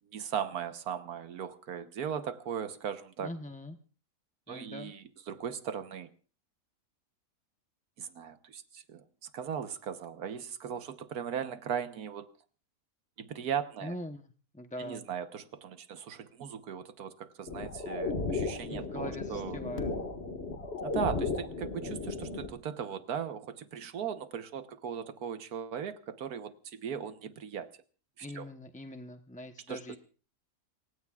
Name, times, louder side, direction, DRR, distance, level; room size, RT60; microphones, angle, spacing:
voice 1, 0.1-3.3 4.5-6.1 8.0-12.3 13.2-13.9 14.8-19.6 20.8-27.7 28.3-28.5 29.7-29.8, right 8 dB, 85° right, 10 dB, 1.6 m, -38 dB
voice 2, 3.2-3.8 4.5-4.9 13.8-14.2 14.5-15.0 18.7-19.9 28.2-30.0, left 1 dB, 10° left, 6 dB, 0.6 m, -42 dB
sound 1, 17.5-22.5, left 3 dB, 45° left, 2.0 m, -35 dB
28.5 x 16.0 x 2.4 m, 0.37 s
omnidirectional pair, 1.6 m